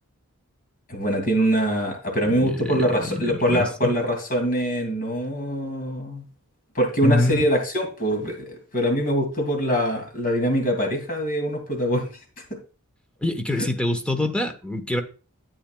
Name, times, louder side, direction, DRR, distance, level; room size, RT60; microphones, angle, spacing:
voice 1, 0.9-6.3 6.7-12.1 13.6-13.7, equal, 40° left, 3 dB, 2.4 m, -23 dB
voice 2, 2.2-3.9 7.0-7.4 13.2-15.0, left 1 dB, 5° left, 6 dB, 1.0 m, -25 dB
12.0 x 8.7 x 2.3 m, 0.34 s
head